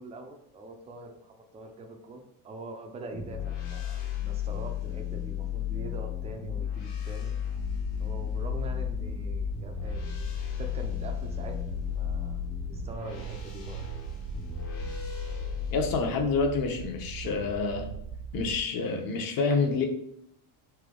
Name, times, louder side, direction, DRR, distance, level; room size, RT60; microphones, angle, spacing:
voice 1, 0.0-7.3 8.0-11.7 12.0-12.4 12.7-13.8, right 2 dB, 15° right, 4 dB, 0.3 m, -43 dB
sound 1, 3.1-15.9, left 9 dB, 65° left, 1.4 m, -34 dB
sound 2, 7.6-18.6, right 6 dB, 60° right, 0.6 m, -41 dB
voice 2, 15.7-17.9 18.3-19.9, left 4 dB, 45° left, 4 dB, 0.8 m, -28 dB
3.8 x 3.4 x 3.7 m, 0.73 s
cardioid pair, 135°, 48 cm